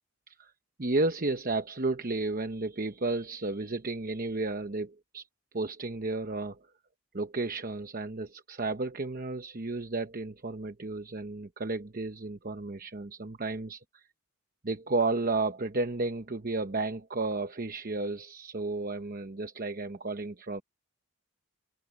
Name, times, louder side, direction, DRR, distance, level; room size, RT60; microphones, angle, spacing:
voice 1, 0.8-5.3 5.5-6.7 7.1-14.1 14.6-20.6, right 3 dB, 40° right, 1.0 m, -32 dB
open air
head